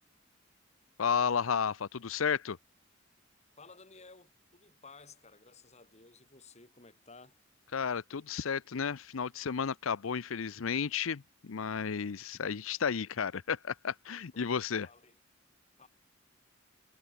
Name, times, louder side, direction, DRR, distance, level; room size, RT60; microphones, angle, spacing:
voice 1, 1.0-2.6 7.7-14.9, left 6 dB, 85° left, 0.6 m, -32 dB
voice 2, 3.6-7.4 14.3-14.5 14.8-15.2 15.8-15.9, left 4 dB, 35° left, 4.2 m, -55 dB
head